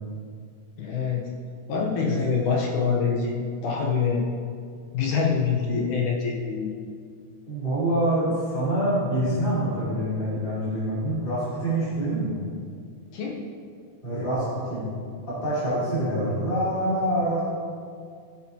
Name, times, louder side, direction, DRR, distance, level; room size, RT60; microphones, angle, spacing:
voice 1, 0.8-1.3 1.7-4.3 4.9-6.7 13.1-13.5, left 5 dB, 70° left, -1 dB, 2.2 m, -25 dB
voice 2, 2.0-2.4 7.5-12.4 14.0-14.9 15.3-17.4, right 1 dB, 15° left, -11 dB, 2.6 m, -26 dB
15.0 x 9.0 x 2.9 m, 2.2 s
omnidirectional pair, 4.1 m